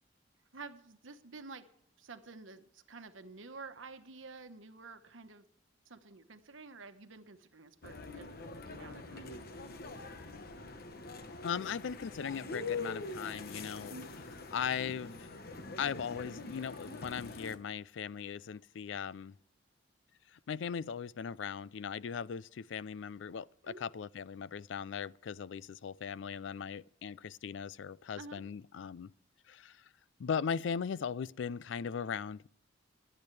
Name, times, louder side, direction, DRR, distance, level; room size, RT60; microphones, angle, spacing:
voice 1, 0.5-1.7 2.0-5.5 5.9-8.4 8.7-9.4 13.9-14.2 23.6-23.9 28.2-28.4, right 3 dB, 90° right, 1.1 m, -50 dB
sound 1, 7.8-17.6, left 3 dB, 50° left, 1.1 m, -44 dB
voice 2, 11.4-13.9 14.5-15.3 15.8-19.4 20.3-29.1 29.5-29.9 30.2-32.5, left 7 dB, 70° left, 0.4 m, -38 dB
22.5 x 8.7 x 3.3 m
head